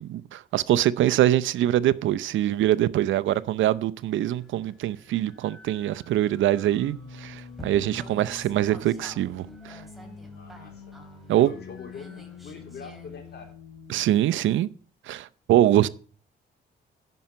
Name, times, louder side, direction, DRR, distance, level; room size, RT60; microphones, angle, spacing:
voice 1, 0.0-9.8 11.3-11.5 13.9-14.7 15.1-15.9, right 13 dB, 75° right, 0.6 m, -23 dB
sound 1, 4.4-13.5, equal, ahead, 2.9 m, -50 dB
sound 2, 6.7-14.0, left 5 dB, 85° left, 1.7 m, -45 dB
voice 2, 10.3-10.9 11.3-13.5, left 5 dB, 55° left, 3.5 m, -43 dB
11.0 x 5.7 x 7.6 m
cardioid pair, 90°, 20 cm